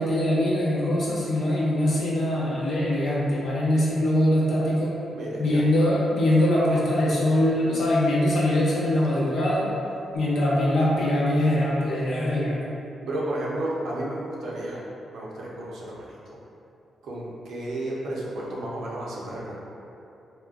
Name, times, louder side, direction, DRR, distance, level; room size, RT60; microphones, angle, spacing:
voice 1, 0.0-4.9 5.4-9.7 10.1-12.5, left 1 dB, 70° left, -6 dB, 0.7 m, -22 dB
voice 2, 5.1-5.6 13.0-14.8 15.1-16.2 17.0-19.5, right 1 dB, 85° right, -5 dB, 0.6 m, -32 dB
3.7 x 2.1 x 2.4 m, 2.8 s
cardioid pair, 85°, 0 cm